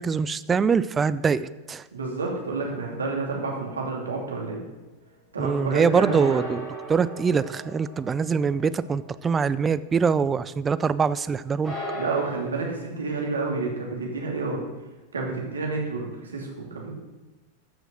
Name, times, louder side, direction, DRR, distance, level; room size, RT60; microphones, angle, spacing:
voice 1, 0.0-1.8 5.4-11.7, right 6 dB, 20° right, 15 dB, 0.4 m, -24 dB
voice 2, 1.9-4.6 5.3-6.4 11.9-14.6 15.1-16.9, right 3 dB, 70° right, -1 dB, 2.7 m, -29 dB
sound 1, 2.5-4.0 6.0-10.2 10.4-10.5 11.6-12.3, right 1 dB, 5° left, 4.3 m, -38 dB
13.5 x 6.3 x 6.3 m, 1.1 s
figure-of-eight pair, 90°, 0 cm